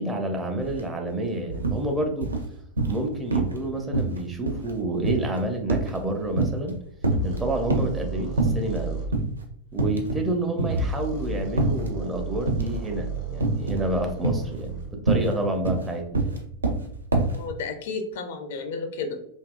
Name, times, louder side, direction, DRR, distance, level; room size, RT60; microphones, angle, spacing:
voice 1, 0.0-2.3 2.9-6.8 7.2-9.0 9.7-16.3, right 1 dB, 15° right, 3 dB, 0.5 m, -29 dB
sound 1, 0.6-0.8 1.1-1.8 2.2-3.0 3.3-3.6 3.9-6.7 7.0-8.0 8.4-8.8 9.1-9.3 9.7-10.3 10.6-11.9 12.5-12.9 13.4-13.9 14.2-17.4, right 3 dB, 75° right, 0.4 m, -25 dB
sound 2, 7.1-9.1 10.6-14.9, right 2 dB, 40° right, 0.7 m, -33 dB
voice 2, 17.3-19.2, left 4 dB, 55° left, 6 dB, 0.4 m, -32 dB
3.4 x 2.3 x 2.2 m, 0.69 s
figure-of-eight pair, 90°, 0 cm